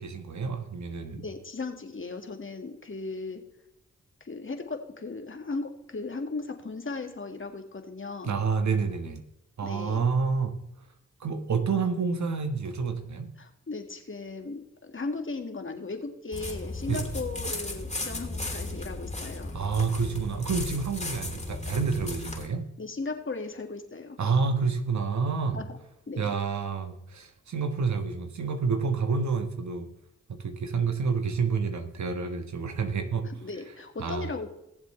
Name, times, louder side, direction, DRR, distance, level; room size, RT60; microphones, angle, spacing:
voice 1, 0.0-1.3 8.2-9.2 9.6-10.6 11.2-13.3 16.9-17.1 19.5-22.6 24.2-25.6 26.2-29.9 30.3-33.3 34.0-34.3, right 5 dB, 60° right, 7 dB, 1.5 m, -28 dB
voice 2, 1.2-3.4 4.2-8.3 9.6-10.1 13.4-19.5 22.8-24.2 25.5-25.7 26.1-26.3 33.2-34.5, left 3 dB, 40° left, 5 dB, 2.0 m, -37 dB
sound 1, 16.3-22.5, left 2 dB, 20° left, 3.3 m, -35 dB
19.0 x 7.3 x 3.3 m, 0.84 s
supercardioid pair, 40°, 32 cm